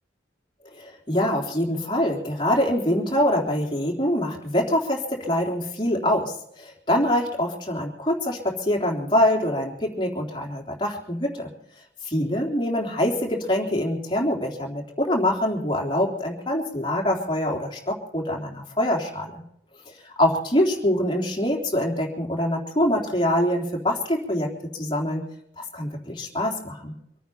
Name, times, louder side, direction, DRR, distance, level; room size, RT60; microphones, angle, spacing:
voice 1, 0.8-11.5 12.1-19.4 20.0-24.5 24.7-25.2 25.6-26.9, left 1 dB, 25° left, -1 dB, 3.5 m, -24 dB
25.5 x 9.3 x 5.7 m, 0.74 s
head